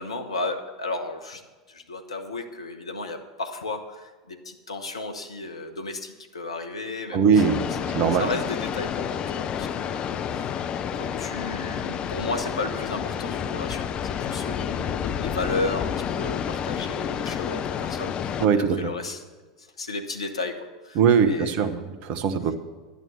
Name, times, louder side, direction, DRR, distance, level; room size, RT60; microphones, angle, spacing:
voice 1, 0.0-1.4 1.7-7.8 8.2-10.6 10.9-13.9 14.2-19.2 19.6-21.6, left 2 dB, 80° left, 6 dB, 1.0 m, -34 dB
voice 2, 7.1-8.3 18.4-18.9 21.0-22.5, right 6 dB, 45° right, 10 dB, 1.1 m, -21 dB
sound 1, 7.4-18.5, left 8 dB, 35° left, 0.6 m, -30 dB
11.0 x 9.7 x 6.2 m, 1.4 s
figure-of-eight pair, 80°, 3 cm